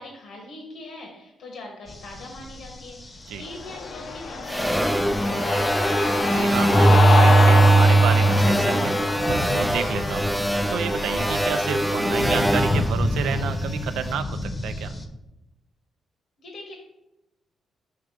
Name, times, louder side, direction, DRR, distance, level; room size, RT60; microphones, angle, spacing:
voice 1, 0.0-5.8 16.4-16.7, left 2 dB, 80° left, 1 dB, 1.2 m, -41 dB
sound 1, 1.9-15.1, left 1 dB, 30° left, 0.8 m, -33 dB
Cheering, 3.5-12.7, left 4 dB, 60° left, 0.6 m, -28 dB
sound 2, 4.5-13.9, right 2 dB, ahead, 0.3 m, -20 dB
voice 2, 6.2-8.9 9.3-10.3 10.7-14.9, right 8 dB, 85° right, 11 dB, 0.4 m, -30 dB
5.4 x 3.4 x 5.0 m, 0.94 s
cardioid pair, 85°, 0 cm